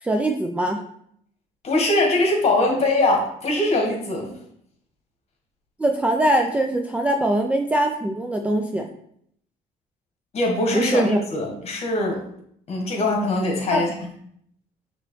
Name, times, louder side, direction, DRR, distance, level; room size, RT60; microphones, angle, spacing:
voice 1, 0.0-0.8 5.8-8.9 10.7-11.2 13.7-13.8, right 1 dB, 10° right, 3 dB, 0.3 m, -22 dB
voice 2, 1.6-4.3 10.3-12.2 12.7-13.9, left 2 dB, 40° left, 1 dB, 1.5 m, -22 dB
5.5 x 3.0 x 3.1 m, 0.69 s
cardioid pair, 110°, 17 cm